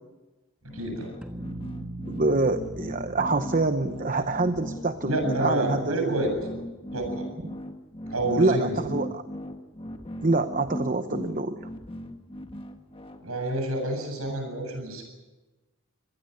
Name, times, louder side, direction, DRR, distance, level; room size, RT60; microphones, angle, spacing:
sound 1, 0.6-13.2, equal, 25° left, 1.5 m, -38 dB
voice 1, 0.7-1.1 5.1-6.3 6.9-7.2 8.1-8.7 13.2-15.0, right 1 dB, 75° right, 3 dB, 8.0 m, -28 dB
sound 2, 1.2-6.1, right 2 dB, 5° right, 1.4 m, -42 dB
voice 2, 2.1-6.1 7.4-7.6 8.3-9.2 10.2-11.7, right 2 dB, 35° right, 9 dB, 0.8 m, -26 dB
25.5 x 18.5 x 8.1 m, 1.2 s
head